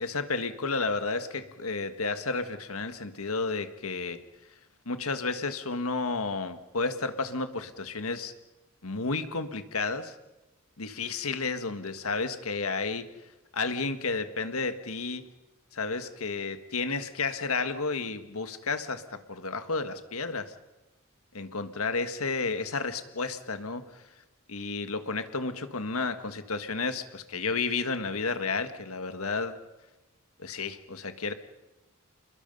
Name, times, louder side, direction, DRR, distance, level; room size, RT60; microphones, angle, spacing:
voice 1, 0.0-4.2 4.8-8.3 8.8-10.1 10.8-13.1 13.5-15.2 15.7-20.5 21.3-24.0 24.5-29.5 30.4-31.3, left 4 dB, 85° left, 9 dB, 1.6 m, -32 dB
29.0 x 22.0 x 5.4 m, 1.1 s
head